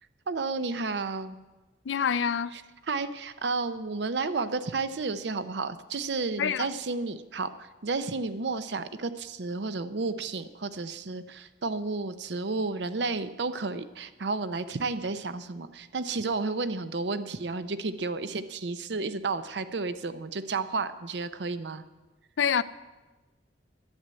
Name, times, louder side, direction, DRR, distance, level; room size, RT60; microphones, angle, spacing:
voice 1, 0.3-1.4 2.5-2.6 2.9-7.5 7.8-21.8, right 3 dB, 70° right, 0.7 m, -32 dB
voice 2, 1.9-2.5 6.4-6.7 22.4-22.6, left 7 dB, 85° left, 0.4 m, -26 dB
10.5 x 7.6 x 9.3 m
head